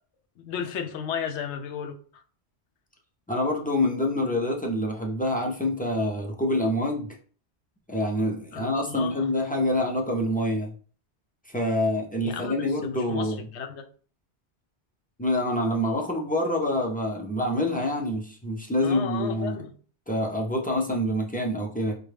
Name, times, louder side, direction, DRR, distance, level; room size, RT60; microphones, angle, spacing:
voice 1, 0.4-2.0 8.5-9.3 12.2-13.9 18.8-19.7, left 7 dB, 85° left, 0.9 m, -34 dB
voice 2, 3.3-7.1 7.9-10.7 11.5-13.5 15.2-19.6 20.1-21.9, left 1 dB, 10° left, 0.4 m, -26 dB
4.8 x 2.2 x 3.3 m
omnidirectional pair, 1.1 m